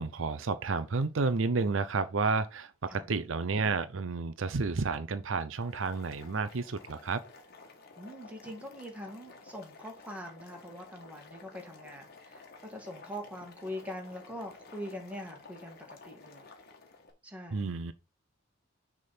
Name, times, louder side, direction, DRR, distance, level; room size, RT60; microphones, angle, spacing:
voice 1, 0.0-7.2 17.5-17.9, right 4 dB, 75° right, 0.6 m, -31 dB
Boiling, 5.5-17.1, left 3 dB, 55° left, 1.6 m, -53 dB
voice 2, 8.0-16.5 17.2-17.7, equal, 5° right, 2.0 m, -43 dB
6.4 x 3.6 x 5.9 m
head